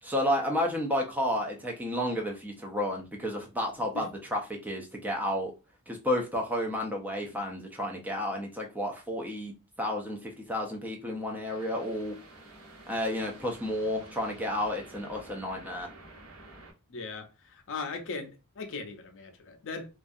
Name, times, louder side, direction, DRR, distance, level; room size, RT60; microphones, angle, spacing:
voice 1, 0.0-5.5 5.9-12.1 12.9-15.9, left 1 dB, 5° right, 0.4 m, -31 dB
sound 1, 11.4-16.7, right 2 dB, 75° right, 1.2 m, -50 dB
voice 2, 16.9-19.9, left 4 dB, 60° left, 0.5 m, -39 dB
2.3 x 2.3 x 2.5 m
head